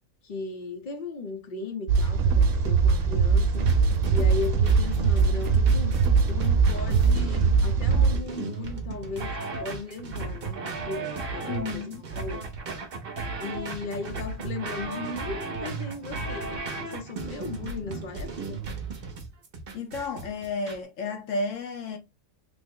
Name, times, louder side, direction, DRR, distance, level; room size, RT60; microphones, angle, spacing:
voice 1, 0.2-3.6 4.1-6.0 6.3-9.3 9.6-12.4 13.4-18.6, left 4 dB, 50° left, 0.7 m, -37 dB
sound 1, 1.9-8.2, right 5 dB, 75° right, 1.0 m, -21 dB
sound 2, 3.5-20.8, right 4 dB, 50° right, 0.9 m, -35 dB
voice 2, 11.4-12.0 19.7-22.0, left 3 dB, 70° left, 1.1 m, -32 dB
3.5 x 2.0 x 3.6 m
omnidirectional pair, 1.4 m